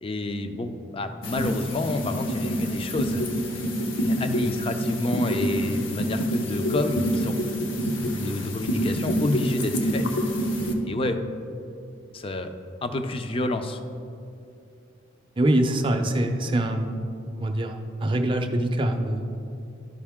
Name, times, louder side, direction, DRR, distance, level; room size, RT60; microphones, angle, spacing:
voice 1, 0.0-3.3 3.5-3.7 4.0-7.4 8.1-10.1 10.9-11.2 12.1-12.5 12.8-13.8, left 2 dB, 30° left, 8 dB, 0.4 m, -29 dB
sound 1, 1.2-10.7, equal, 70° left, 0.8 m, -27 dB
voice 2, 15.4-17.0 17.4-19.3, right 1 dB, 25° right, 4 dB, 0.5 m, -24 dB
12.0 x 5.2 x 3.6 m, 2.6 s
head